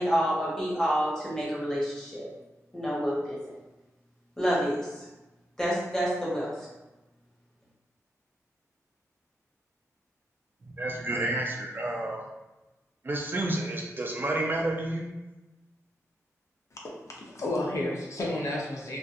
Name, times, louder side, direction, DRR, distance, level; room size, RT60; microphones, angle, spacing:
voice 1, 0.0-2.3 2.7-3.5 4.4-5.0 5.6-6.5, equal, 10° left, -7 dB, 1.0 m, -28 dB
voice 2, 10.7-12.2 13.0-15.1, right 2 dB, 35° right, -1 dB, 0.4 m, -30 dB
voice 3, 16.7-19.0, left 1 dB, 60° left, -2 dB, 0.5 m, -32 dB
2.6 x 2.3 x 2.4 m, 1.1 s
wide cardioid pair, 105°, 6 cm